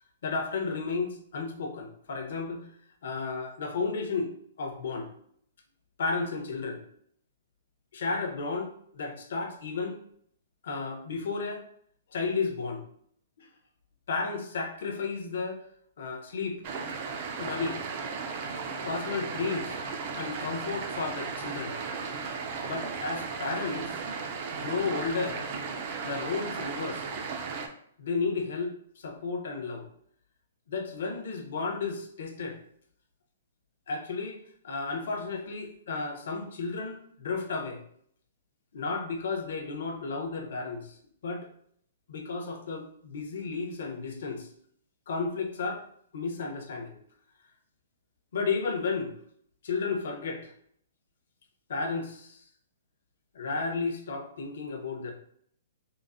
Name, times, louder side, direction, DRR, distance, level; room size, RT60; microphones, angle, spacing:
voice 1, 0.2-2.7 3.0-4.3 4.6-5.1 6.0-6.8 7.9-10.0 10.6-11.6 12.1-12.8 13.4-13.5 14.1-15.6 16.0-16.6 17.4-17.8 18.8-19.8 20.1-21.8 22.6-24.0 24.5-25.5 26.0-27.1 28.0-29.9 30.7-32.6 33.9-37.8 38.7-41.0 41.2-41.5 42.1-44.5 45.1-45.8 46.1-47.0 48.3-49.1 49.6-50.5 51.7-52.4 53.3-55.1, left 4 dB, 65° left, 2 dB, 0.7 m, -33 dB
sound 1, 16.6-27.7, right 5 dB, 40° right, 0.4 m, -35 dB
3.7 x 2.0 x 2.5 m, 0.65 s
hypercardioid pair, 160°, 0 cm